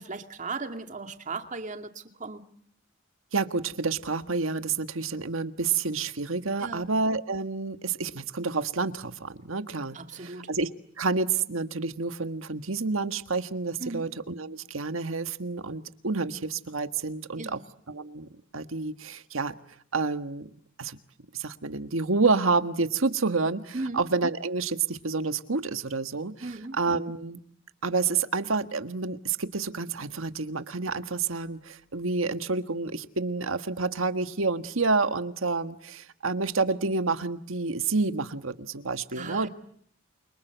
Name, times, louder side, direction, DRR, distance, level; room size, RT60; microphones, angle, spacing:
voice 1, 0.0-2.5 6.6-6.8 9.9-10.5 13.8-14.1 17.4-17.6 23.7-24.0 26.4-26.8 39.1-39.5, right 3 dB, 40° right, 2.4 m, -37 dB
voice 2, 3.3-10.7 11.0-17.6 17.9-18.3 18.5-19.5 19.9-20.5 20.8-21.0 21.3-26.3 26.8-27.4 27.8-39.5, right 4 dB, 85° right, 1.6 m, -29 dB
29.0 x 25.0 x 8.0 m
head